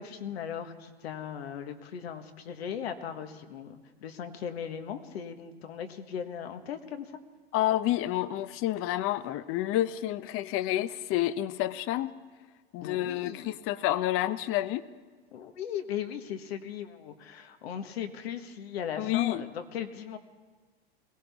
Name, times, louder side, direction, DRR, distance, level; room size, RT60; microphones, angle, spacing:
voice 1, 0.0-7.1 12.8-13.5 15.3-20.2, left 8 dB, 75° left, 7 dB, 1.4 m, -38 dB
voice 2, 7.5-12.1 12.7-14.9 19.0-19.4, left 14 dB, 45° left, 15 dB, 0.7 m, -29 dB
22.0 x 17.0 x 3.5 m, 1.4 s
hypercardioid pair, 95°, 31 cm